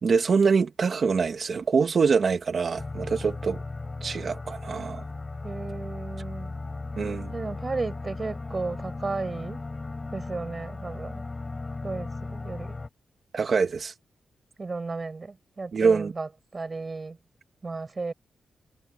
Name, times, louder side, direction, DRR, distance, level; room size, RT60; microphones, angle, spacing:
voice 1, 0.0-3.6 4.0-5.0 7.0-7.3 13.3-13.9 15.7-16.1, right 5 dB, 55° right, 1.6 m, -24 dB
sound 1, 2.8-12.9, left 3 dB, 30° left, 6.8 m, -36 dB
voice 2, 5.4-6.5 7.3-9.6 10.1-11.2 11.8-12.8 14.6-17.2 17.6-18.1, right 3 dB, 35° right, 6.2 m, -34 dB
cardioid pair, 90°, 0 cm